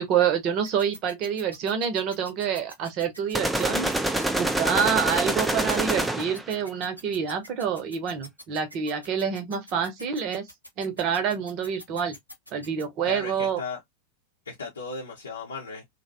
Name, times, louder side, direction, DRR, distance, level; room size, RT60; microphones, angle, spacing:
voice 1, 0.0-10.5 10.8-12.2 12.5-13.6, right 7 dB, 40° right, 0.8 m, -27 dB
sound 1, 0.6-12.8, equal, 90° right, 0.8 m, -44 dB
sound 2, 3.3-6.5, right 1 dB, 5° right, 0.4 m, -26 dB
voice 2, 13.1-13.8 14.5-15.8, left 4 dB, 70° left, 0.8 m, -36 dB
2.6 x 2.2 x 2.6 m
figure-of-eight pair, 90°, 0 cm